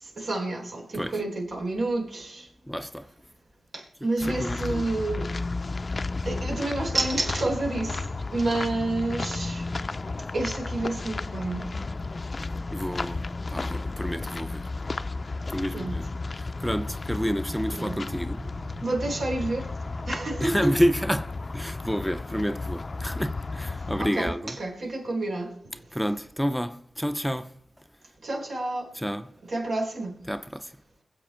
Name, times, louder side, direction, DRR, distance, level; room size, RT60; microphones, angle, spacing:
voice 1, 0.0-2.5 3.7-5.3 6.3-8.0 8.3-9.7 10.3-11.6 15.7-15.9 17.7-18.0 18.8-19.7 20.0-20.7 24.0-25.5 28.2-28.9 29.5-30.1, right 2 dB, 75° right, 4.3 m, -29 dB
voice 2, 2.7-3.1 4.0-4.9 12.7-14.7 15.5-18.5 19.1-19.2 20.4-24.6 25.9-27.5 28.9-29.3 30.2-30.7, equal, ahead, 0.6 m, -29 dB
sound 1, 4.2-24.1, left 3 dB, 45° left, 0.5 m, -33 dB
22.0 x 7.8 x 4.4 m
cardioid pair, 50°, 0 cm